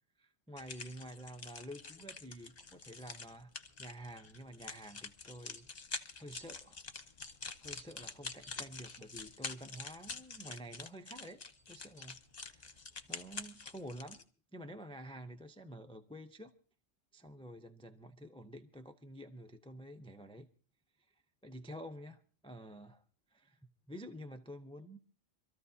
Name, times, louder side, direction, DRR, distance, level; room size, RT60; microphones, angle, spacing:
voice 1, 0.2-3.5 3.8-5.9 6.2-6.8 7.6-14.2 14.5-16.5 17.1-20.5 21.4-23.0 23.3-23.6 23.9-25.0, equal, 5° left, 0.4 m, -49 dB
sound 1, 0.6-14.2, left 4 dB, 35° left, 1.0 m, -47 dB
26.0 x 13.5 x 2.8 m
omnidirectional pair, 1.3 m